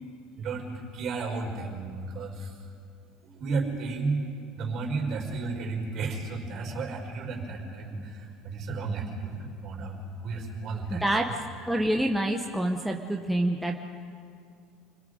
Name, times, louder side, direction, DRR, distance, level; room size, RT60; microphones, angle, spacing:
voice 1, 0.4-2.3 3.4-4.3 4.6-7.9 8.4-9.3 9.6-9.9 10.2-11.0, right 4 dB, 40° right, 0 dB, 4.6 m, -32 dB
voice 2, 10.9-11.3 11.7-13.8, right 1 dB, ahead, 1 dB, 0.9 m, -27 dB
29.0 x 22.0 x 5.0 m, 2.4 s
cardioid pair, 160°, 0 cm